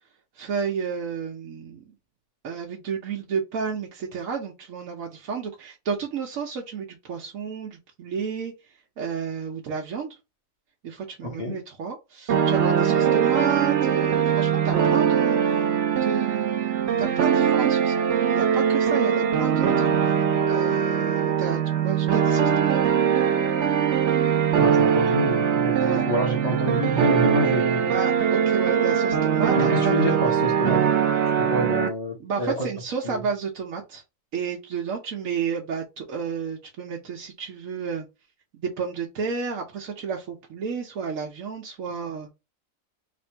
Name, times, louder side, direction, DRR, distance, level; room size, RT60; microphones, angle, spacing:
voice 1, 0.4-1.8 2.4-8.5 9.0-10.2 10.8-19.9 20.5-23.0 25.8-26.0 27.9-30.0 30.3-30.4 32.2-34.0 34.3-38.1 38.6-42.3, right 6 dB, 85° right, 1.2 m, -31 dB
voice 2, 11.2-11.6 24.6-27.9 29.6-30.9 31.4-32.7 33.0-33.2, left 1 dB, 30° left, 1.1 m, -27 dB
sound 1, 12.3-31.9, right 8 dB, 60° right, 1.0 m, -22 dB
3.6 x 2.6 x 4.4 m
omnidirectional pair, 1.4 m